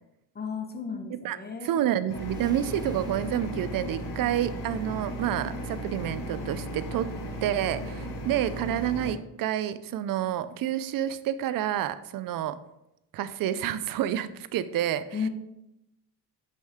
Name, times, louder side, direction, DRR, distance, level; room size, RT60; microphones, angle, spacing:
voice 1, 0.3-1.8 15.1-15.3, left 5 dB, 25° left, 4 dB, 1.1 m, -34 dB
voice 2, 1.6-7.1 7.4-12.6 13.1-15.0, right 11 dB, 60° right, 14 dB, 0.5 m, -29 dB
sound 1, 2.1-9.1, equal, 85° left, 1.9 m, -36 dB
sound 2, 2.2-4.8, right 2 dB, 10° right, 0.4 m, -48 dB
Guitar, 3.3-6.5 6.9-7.0, equal, 5° left, 2.3 m, -55 dB
6.4 x 5.4 x 3.6 m, 0.87 s
cardioid pair, 95°, 39 cm